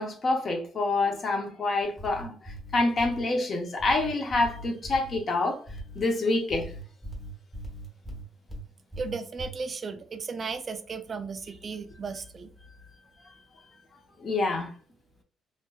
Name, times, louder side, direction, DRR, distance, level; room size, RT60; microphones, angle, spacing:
voice 1, 0.0-5.6 6.0-6.7 14.2-14.7, left 2 dB, 45° left, 0.6 m, -27 dB
sound 1, 1.8-3.2 3.8-5.2 5.7-6.0 6.5-8.6 8.9-9.5, right 1 dB, 5° left, 0.9 m, -40 dB
voice 2, 9.0-12.5, right 4 dB, 45° right, 0.3 m, -35 dB
2.6 x 2.1 x 2.2 m
cardioid pair, 90°, 0 cm